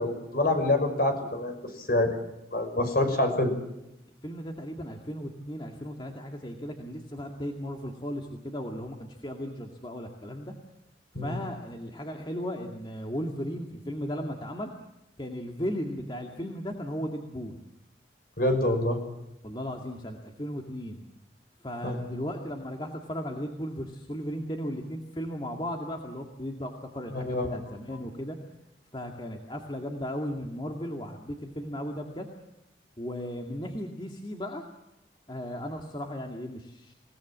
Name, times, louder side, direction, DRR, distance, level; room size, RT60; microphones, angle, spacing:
voice 1, 0.0-2.2 2.5-3.5 11.1-11.3 18.4-19.0 21.8-22.2 27.1-27.6, left 1 dB, 50° left, 6 dB, 5.9 m, -26 dB
voice 2, 4.2-10.5 11.2-14.7 15.2-17.6 19.4-21.0 21.6-28.4 28.9-32.3 33.0-34.6 35.3-36.9, equal, 25° left, 2 dB, 2.2 m, -36 dB
28.0 x 18.5 x 7.4 m, 0.92 s
head